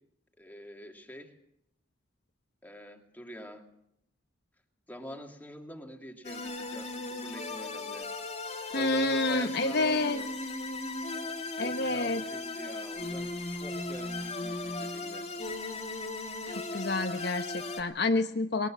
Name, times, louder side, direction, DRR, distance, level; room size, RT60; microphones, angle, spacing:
voice 1, 0.4-1.4 2.6-3.6 4.9-8.1 8.7-10.3 11.6-15.3, equal, 10° left, 3 dB, 2.3 m, -45 dB
sound 1, 6.2-17.8, left 2 dB, 35° left, 2.4 m, -37 dB
voice 2, 8.7-10.2 11.6-12.2 16.5-18.7, left 2 dB, 55° left, 6 dB, 1.1 m, -29 dB
21.0 x 19.0 x 7.3 m, 0.76 s
head